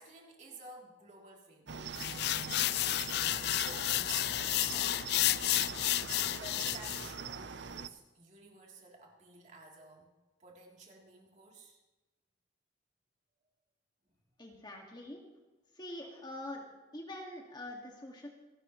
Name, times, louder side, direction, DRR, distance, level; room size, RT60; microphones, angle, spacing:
voice 1, 0.0-1.9 2.8-5.0 6.3-10.1 10.4-11.8, right 2 dB, 40° right, -1 dB, 3.3 m, -54 dB
Cricket, 1.7-7.9, right 5 dB, 65° right, 0.7 m, -43 dB
sound 1, 2.0-7.1, left 14 dB, 60° left, 0.4 m, -31 dB
voice 2, 14.4-15.2 15.7-16.7 16.9-18.3, left 1 dB, 25° left, 0 dB, 2.0 m, -44 dB
27.5 x 12.5 x 3.2 m, 1.1 s
head